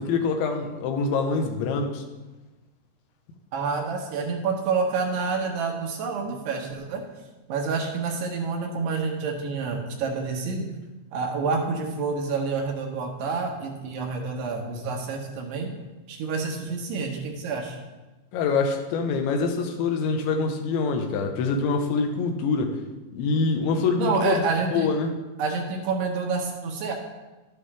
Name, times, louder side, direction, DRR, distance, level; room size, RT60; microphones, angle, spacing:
voice 1, 0.0-2.0 18.3-22.8 23.1-25.1, left 4 dB, 85° left, 4 dB, 3.3 m, -25 dB
voice 2, 3.5-7.0 7.5-10.7 11.1-15.7 16.1-17.8 24.0-24.9 25.4-26.9, right 4 dB, 75° right, 1 dB, 3.1 m, -28 dB
12.5 x 8.5 x 3.3 m, 1.1 s
omnidirectional pair, 5.1 m